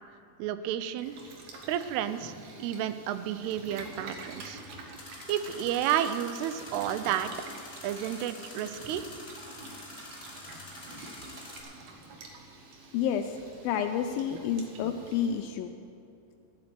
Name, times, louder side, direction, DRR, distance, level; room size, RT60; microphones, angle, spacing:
voice 1, 0.4-1.2 1.7-2.3 2.6-4.6 5.3-7.3 7.8-9.1, right 10 dB, 85° right, 11 dB, 2.6 m, -31 dB
Boiling, 0.9-15.5, right 2 dB, 70° right, 1.6 m, -48 dB
sound 1, 5.0-11.6, left 2 dB, 25° left, 1.3 m, -47 dB
voice 2, 12.9-13.4 13.6-15.7, left 8 dB, 85° left, 7 dB, 2.1 m, -29 dB
13.0 x 8.0 x 7.6 m, 2.6 s
omnidirectional pair, 4.6 m